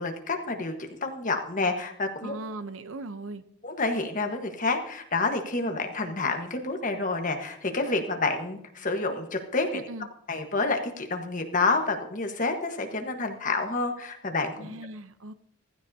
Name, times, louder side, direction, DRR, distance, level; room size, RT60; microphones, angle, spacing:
voice 1, 0.0-2.4 3.6-9.8 10.3-14.8, left 3 dB, 40° left, 4 dB, 1.4 m, -29 dB
voice 2, 2.2-3.4 9.7-10.1 14.6-15.3, right 2 dB, 75° right, 11 dB, 0.8 m, -38 dB
15.5 x 14.5 x 2.8 m, 0.70 s
head